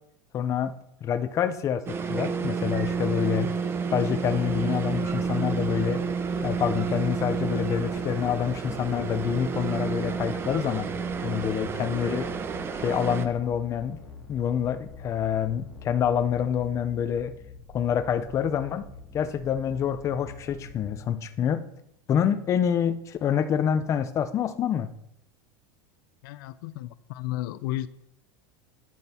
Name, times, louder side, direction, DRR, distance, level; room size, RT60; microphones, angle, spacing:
voice 1, 0.3-0.8 1.0-3.5 3.9-6.0 6.4-10.9 11.2-12.3 12.7-14.0 14.3-17.3 17.7-18.9 19.1-21.7 22.1-24.9, left 8 dB, 25° left, 10 dB, 0.7 m, -27 dB
sound 1, 1.9-13.3, right 6 dB, 20° right, 0.7 m, -30 dB
sound 2, 4.2-20.9, left 4 dB, 5° left, 3.0 m, -45 dB
voice 2, 26.2-27.9, left 15 dB, 60° left, 14 dB, 0.5 m, -33 dB
11.0 x 10.0 x 4.3 m, 0.78 s
supercardioid pair, 165°, 13 cm